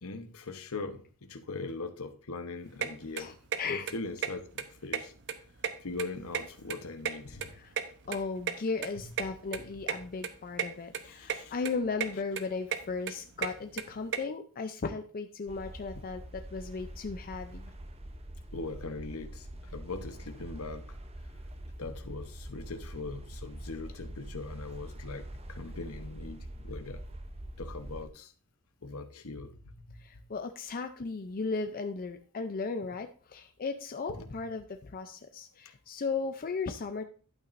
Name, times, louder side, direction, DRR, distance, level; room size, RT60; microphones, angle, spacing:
voice 1, 0.0-3.3 3.7-5.1 5.8-7.5 11.0-11.5 18.5-19.5 19.7-20.8 21.8-27.0 27.6-28.3 28.8-30.0 34.1-34.2, left 3 dB, 70° left, 8 dB, 1.0 m, -41 dB
sound 1, 2.8-2.9 3.2-3.6 3.9-4.0 4.2-4.3 4.6-5.3 5.6-6.8 7.0-8.5 8.8-8.9 9.2-9.3 9.5-9.6 9.9-10.0 10.2-10.7 10.9-11.4 11.6-12.1 12.4-14.2, right 7 dB, 55° right, 0.9 m, -33 dB
voice 2, 3.2-3.9 7.5-7.7 8.1-17.7 30.0-37.0, left 4 dB, 40° left, 6 dB, 0.5 m, -36 dB
sound 2, 15.5-28.1, right 1 dB, 30° right, 0.7 m, -44 dB
11.5 x 8.9 x 2.6 m, 0.40 s
head